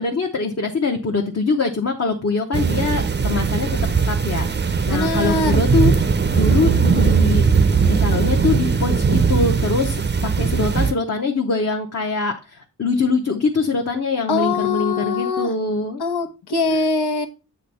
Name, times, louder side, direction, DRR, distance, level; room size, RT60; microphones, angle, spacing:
voice 1, 0.0-3.8 4.1-5.9 6.3-7.4 7.8-16.0, left 4 dB, 40° left, 1 dB, 0.9 m, -23 dB
sound 1, 2.5-10.9, right 5 dB, 25° right, 0.5 m, -19 dB
voice 2, 4.9-5.6 14.3-15.5 16.0-17.3, left 3 dB, 80° left, 5 dB, 1.2 m, -22 dB
8.3 x 3.5 x 5.4 m, 0.30 s
wide cardioid pair, 125°, 39 cm